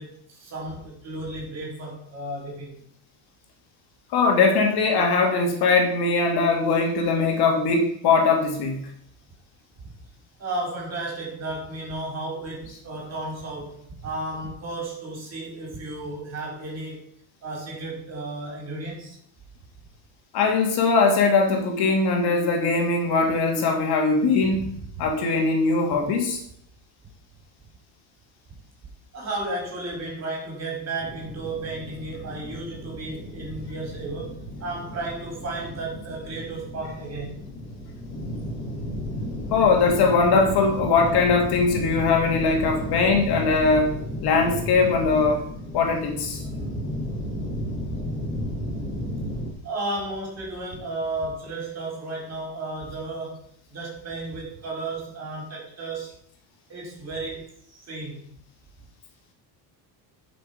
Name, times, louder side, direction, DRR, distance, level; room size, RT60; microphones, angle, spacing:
voice 1, 0.0-2.8 9.8-9.9 10.4-17.1 17.4-19.2 24.5-25.1 29.1-37.4 42.7-42.8 48.4-48.5 49.6-56.1 56.7-58.3, right 2 dB, 35° right, -1 dB, 5.2 m, -33 dB
voice 2, 4.1-8.9 20.3-24.6 25.0-26.4 39.5-43.9 44.2-45.4 45.7-46.4, left 4 dB, 60° left, 2 dB, 2.8 m, -21 dB
sound 1, 31.0-49.5, equal, 25° left, 3.7 m, -33 dB
11.0 x 6.9 x 5.4 m, 0.67 s
cardioid pair, 145°, 42 cm